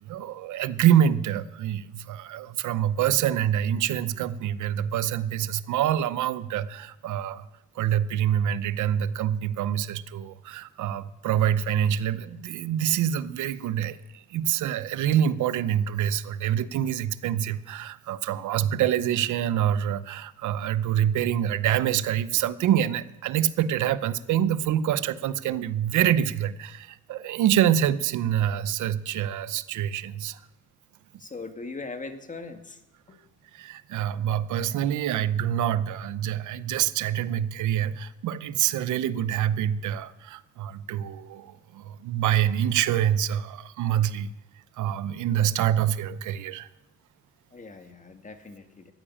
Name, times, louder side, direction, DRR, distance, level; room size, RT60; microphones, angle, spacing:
voice 1, 0.0-7.5 7.8-30.4 33.5-44.3 44.8-46.7, right 10 dB, 80° right, 15 dB, 0.8 m, -26 dB
voice 2, 31.2-32.8 33.1-33.2 47.5-48.9, left 3 dB, 25° left, 7 dB, 2.0 m, -40 dB
14.0 x 10.0 x 8.6 m, 0.96 s
cardioid pair, 90°, 30 cm